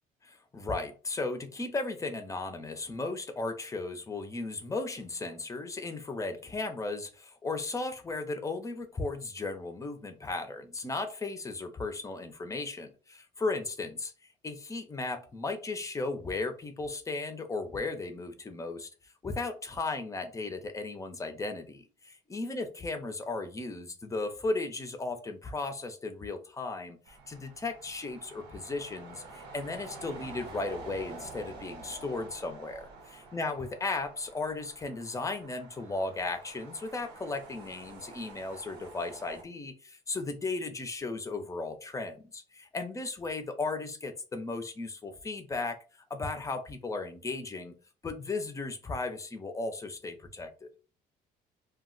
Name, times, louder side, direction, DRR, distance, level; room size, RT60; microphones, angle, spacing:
voice 1, 0.2-14.1 14.4-18.9 19.2-32.9 33.3-45.8 46.1-47.7 48.0-50.7, left 3 dB, 20° left, 0.5 m, -36 dB
sound 1, 27.1-39.4, right 3 dB, 80° right, 0.8 m, -48 dB
2.3 x 2.1 x 3.7 m
cardioid pair, 110°, 17 cm